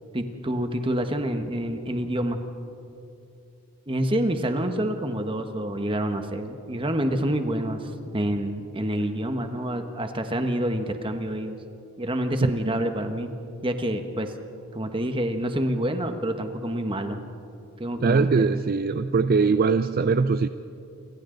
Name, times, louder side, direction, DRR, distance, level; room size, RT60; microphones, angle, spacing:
voice 1, 0.1-2.4 3.9-7.8 8.1-11.6 12.0-13.3 13.6-14.3 14.7-17.2 17.8-18.3, right 1 dB, 25° right, 6 dB, 1.3 m, -27 dB
voice 2, 18.0-20.5, right 4 dB, 45° right, 12 dB, 0.4 m, -22 dB
29.0 x 24.5 x 3.9 m, 2.7 s
head